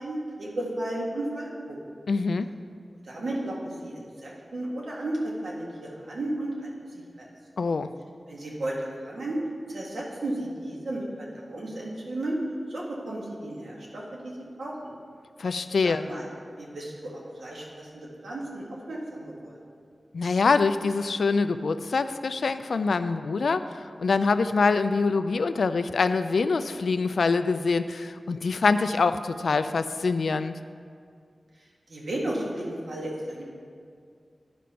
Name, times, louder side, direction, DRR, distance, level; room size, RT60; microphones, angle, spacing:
voice 1, 0.0-1.9 3.0-7.3 8.3-9.4 9.7-12.4 12.7-14.9 15.8-16.3 16.6-19.6 31.9-33.5, right 1 dB, 90° right, -3 dB, 1.7 m, -34 dB
voice 2, 2.1-2.5 7.6-7.9 15.4-16.0 20.1-30.6, left 4 dB, 90° left, 11 dB, 0.3 m, -25 dB
11.0 x 5.1 x 5.6 m, 2.2 s
wide cardioid pair, 80°, 0 cm